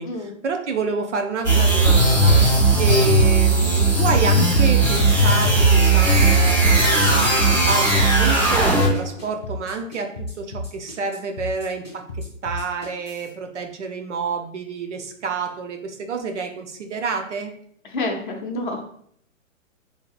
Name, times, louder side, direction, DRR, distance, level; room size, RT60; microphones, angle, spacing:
voice 1, 0.0-12.0 12.4-17.5, right 4 dB, 60° right, 4 dB, 0.6 m, -28 dB
sound 1, 1.4-9.1, right 2 dB, 30° right, 1.1 m, -17 dB
sound 2, 5.6-13.3, left 1 dB, 10° right, 1.2 m, -33 dB
voice 2, 17.9-18.9, left 2 dB, 40° left, 0 dB, 0.6 m, -28 dB
4.4 x 2.8 x 2.3 m, 0.64 s
hypercardioid pair, 175°, 40 cm